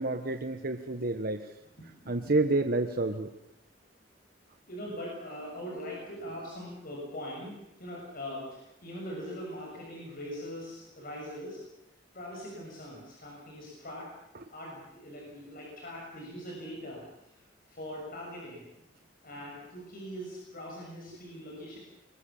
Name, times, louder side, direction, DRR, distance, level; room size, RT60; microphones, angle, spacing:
voice 1, 0.0-1.5 2.1-3.3, right 2 dB, 55° right, 6 dB, 1.2 m, -29 dB
voice 2, 1.8-2.4 4.7-11.6 12.1-14.1 14.5-17.1 17.4-18.7 19.2-21.8, equal, 55° left, -2 dB, 6.9 m, -42 dB
26.0 x 22.0 x 7.1 m, 0.83 s
head